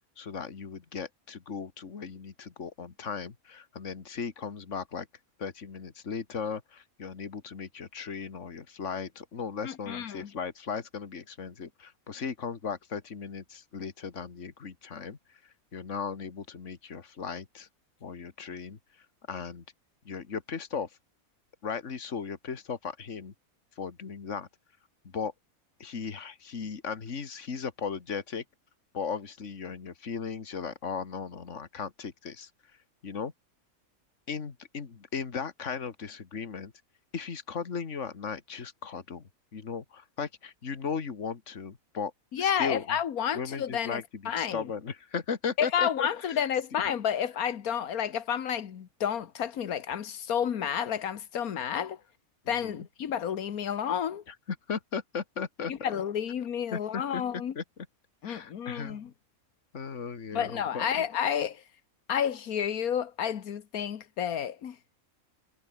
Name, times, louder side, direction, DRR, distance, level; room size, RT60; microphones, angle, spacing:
voice 1, 0.2-5.1 5.4-17.7 18.0-19.6 20.1-21.0 21.6-23.3 23.8-24.5 25.0-25.3 25.8-28.4 28.9-32.5 33.0-33.3 34.3-36.7 37.1-42.1 42.4-43.0 43.3-46.4 46.8-47.0 52.4-52.9 54.3-55.9 56.7-57.2 57.6-57.7 58.2-59.0 59.7-60.8, left 6 dB, 55° left, 2.2 m, -37 dB
voice 2, 9.6-10.3 42.3-44.6 45.6-52.0 52.5-54.2 55.7-57.5 58.2-59.1 60.3-61.6 62.1-64.8, left 8 dB, 85° left, 1.7 m, -30 dB
omnidirectional pair, 1.5 m